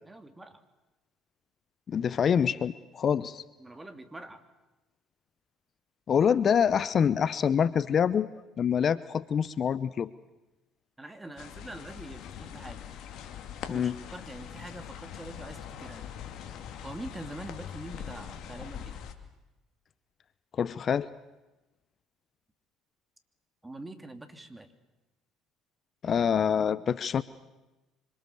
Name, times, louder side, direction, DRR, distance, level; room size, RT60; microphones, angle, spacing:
voice 1, 0.1-0.6 3.6-4.4 11.0-12.9 13.7-16.0 16.8-19.0 23.6-24.7, right 1 dB, 15° right, 8 dB, 3.2 m, -44 dB
voice 2, 1.9-3.4 6.1-8.3 8.6-10.1 13.7-14.0 20.5-21.1 26.0-27.2, left 7 dB, 45° left, 17 dB, 0.8 m, -26 dB
sound 1, 11.4-19.1, left 9 dB, 60° left, 2.4 m, -42 dB
26.0 x 25.5 x 7.1 m, 1.1 s
hypercardioid pair, 60°, 0 cm